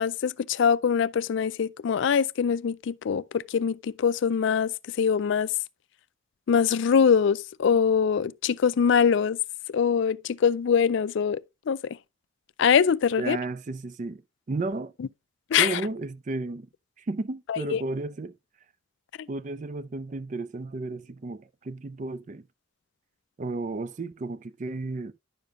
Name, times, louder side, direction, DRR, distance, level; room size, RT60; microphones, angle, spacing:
voice 1, 0.0-4.7 5.0-5.5 6.5-9.4 9.7-11.4 11.7-11.8 12.6-13.4 15.5-15.8 17.5-17.8, left 7 dB, 60° left, 0.3 m, -23 dB
voice 2, 13.2-14.2 14.5-14.9 15.6-16.7 17.0-18.3 19.3-22.4 23.4-25.1, right 3 dB, 35° right, 0.4 m, -33 dB
10.5 x 6.8 x 2.4 m
head